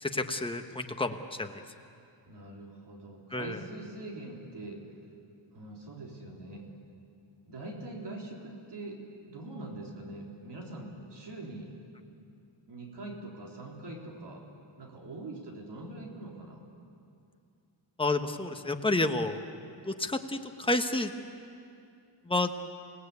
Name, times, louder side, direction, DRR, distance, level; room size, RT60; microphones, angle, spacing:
voice 1, 0.0-1.6 3.3-3.6 18.0-19.4 19.8-21.1 22.3-22.5, left 2 dB, 10° left, 5 dB, 1.2 m, -30 dB
voice 2, 2.3-4.8 5.5-6.7 7.4-11.7 12.7-14.4 14.8-16.6, right 2 dB, 60° right, -1 dB, 3.9 m, -43 dB
28.5 x 18.5 x 8.4 m, 2.5 s
wide cardioid pair, 130°, 47 cm